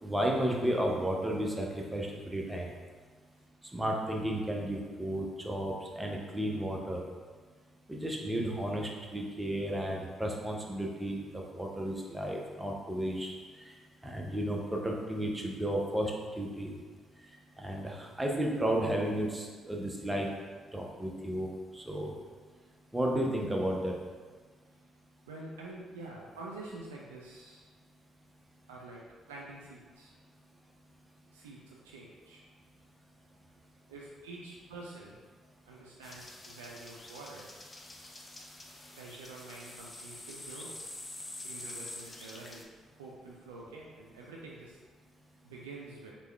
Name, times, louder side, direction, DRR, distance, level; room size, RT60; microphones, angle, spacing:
voice 1, 0.0-2.7 3.7-7.0 7.9-13.3 14.0-16.1 16.4-16.7 17.6-20.3 20.7-21.5 21.8-22.1 22.9-23.9, right 1 dB, 15° right, 0 dB, 0.7 m, -33 dB
voice 2, 25.3-27.7 28.7-30.1 31.3-32.4 33.9-35.2 35.7-37.5 38.9-40.8 41.4-42.7 42.9-44.8 45.4-46.1, right 2 dB, 90° right, -3 dB, 0.3 m, -47 dB
sound 1, 36.0-42.6, left 2 dB, 30° left, 0.5 m, -46 dB
3.4 x 2.2 x 3.3 m, 1.5 s
hypercardioid pair, 50°, 0 cm